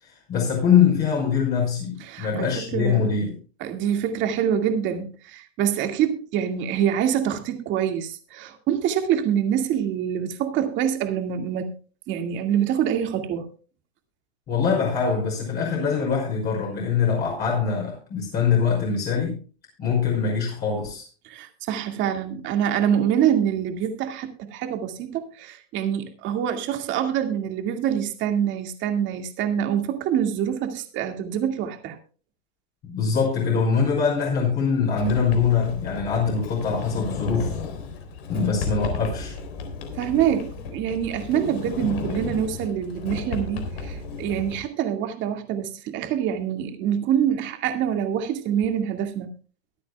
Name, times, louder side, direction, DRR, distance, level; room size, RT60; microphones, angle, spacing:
voice 1, 0.0-3.3 14.5-19.4 19.8-21.0 32.8-37.5 38.3-39.3, left 6 dB, 30° left, 5.8 m, -23 dB
voice 2, 2.0-3.1 3.6-11.7 12.1-13.5 21.2-32.0 40.0-49.3, right 9 dB, 35° right, 2.2 m, -25 dB
Sliding door, 35.0-44.6, left 5 dB, 75° left, 3.7 m, -34 dB
23.5 x 8.5 x 2.3 m
supercardioid pair, 145°, 32 cm